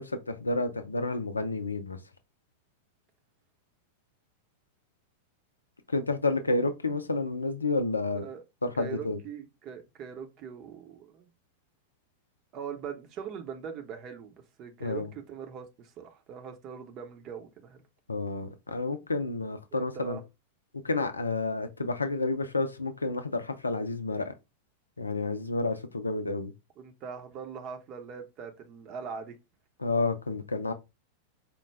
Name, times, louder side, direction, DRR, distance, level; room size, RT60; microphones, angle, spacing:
voice 1, 0.0-2.0 5.9-8.2 8.6-9.2 14.8-15.1 18.1-20.2 20.8-24.3 25.0-26.5 29.8-30.7, left 3 dB, 80° left, 0.5 m, -30 dB
voice 2, 8.7-11.3 12.5-17.8 19.7-20.2 26.8-29.3, right 7 dB, 35° right, 0.7 m, -41 dB
4.6 x 2.1 x 3.3 m
figure-of-eight pair, 90°, 0 cm